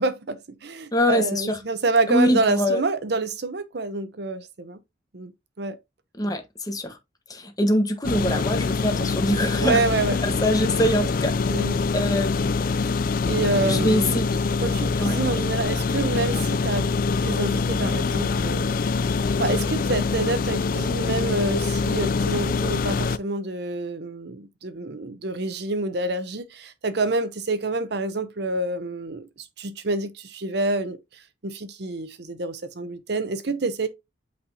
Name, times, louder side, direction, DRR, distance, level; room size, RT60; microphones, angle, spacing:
voice 1, 0.0-4.8 5.1-5.3 5.6-5.8 9.6-10.2 11.5-11.8 13.2-14.1 14.6-18.7 19.4-31.0 31.4-33.9, right 3 dB, 60° right, 0.8 m, -27 dB
voice 2, 0.9-1.6 2.1-2.8 6.2-7.0 7.3-9.8 10.2-12.9 13.6-14.4 15.0-15.2, equal, 20° left, 1.2 m, -24 dB
sound 1, 8.0-23.2, left 4 dB, 45° left, 0.4 m, -24 dB
8.5 x 4.2 x 2.8 m
head